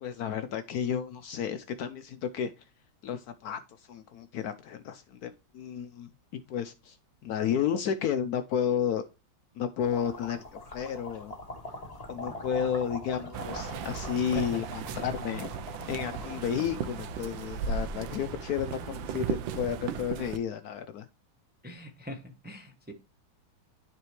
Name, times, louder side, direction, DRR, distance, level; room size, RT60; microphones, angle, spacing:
voice 1, 0.0-2.5 3.0-7.0 7.2-9.0 9.6-11.3 12.1-15.5 15.9-21.1, left 8 dB, 75° left, 0.8 m, -32 dB
sound 1, 9.8-18.3, left 1 dB, 20° left, 1.5 m, -43 dB
sound 2, 13.3-20.4, right 6 dB, 80° right, 1.4 m, -36 dB
voice 2, 21.6-22.9, left 1 dB, 15° right, 0.3 m, -41 dB
9.8 x 4.1 x 3.1 m
omnidirectional pair, 2.1 m